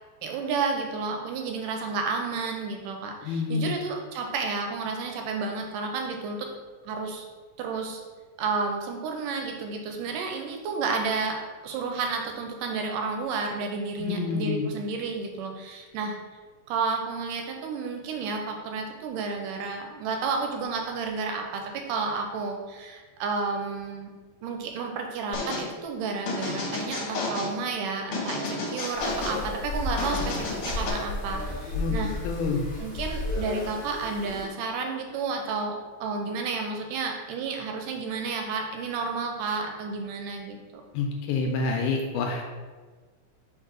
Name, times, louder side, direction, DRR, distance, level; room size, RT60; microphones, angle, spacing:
voice 1, 0.2-6.5 6.8-7.3 7.6-8.0 8.4-11.4 11.6-16.2 16.7-24.1 24.4-32.1 32.8-40.8, right 4 dB, 80° right, 3 dB, 2.2 m, -31 dB
voice 2, 3.2-3.8 14.0-14.7 31.7-32.0 32.2-32.6 40.9-42.5, left 4 dB, 80° left, 2 dB, 1.9 m, -28 dB
sound 1, 25.3-25.7 26.3-27.5 28.1-29.4 30.0-30.9, left 3 dB, 60° left, 1.6 m, -31 dB
sound 2, 28.9-34.5, left 2 dB, 45° left, 1.1 m, -33 dB
4.6 x 4.6 x 5.1 m, 1.4 s
omnidirectional pair, 3.9 m